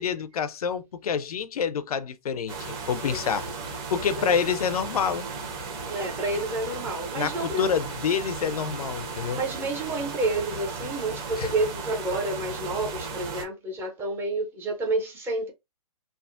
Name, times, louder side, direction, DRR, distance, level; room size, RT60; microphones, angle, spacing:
voice 1, 0.0-3.5 3.9-5.3 7.2-9.4 11.4-11.5, left 7 dB, 65° left, 0.5 m, -27 dB
sound 1, 2.5-13.4, right 4 dB, 35° right, 1.0 m, -35 dB
voice 2, 5.9-7.6 9.3-15.5, right 2 dB, 10° right, 0.5 m, -29 dB
3.4 x 2.0 x 2.5 m
hypercardioid pair, 135°, 20 cm